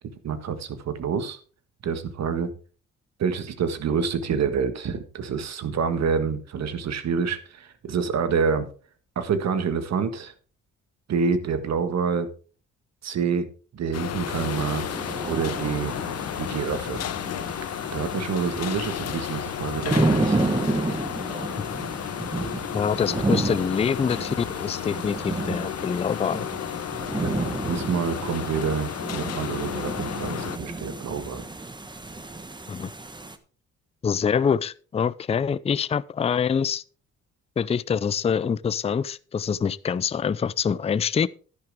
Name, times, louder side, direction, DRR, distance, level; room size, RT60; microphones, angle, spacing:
voice 1, 0.2-1.4 1.8-2.5 3.2-8.7 9.1-10.3 11.1-12.3 13.0-13.5 13.7-14.9 15.3-15.9 16.4-17.0 17.9-20.4 27.2-31.4, right 6 dB, 60° right, 1.6 m, -27 dB
sound 1, 13.9-30.6, left 11 dB, 55° left, 0.8 m, -33 dB
sound 2, 14.3-33.4, right 2 dB, 15° right, 1.2 m, -31 dB
voice 2, 22.7-26.5 32.7-32.9 34.0-36.8 37.6-41.3, left 7 dB, 20° left, 0.4 m, -25 dB
11.0 x 11.0 x 3.6 m
cardioid pair, 90°, 30 cm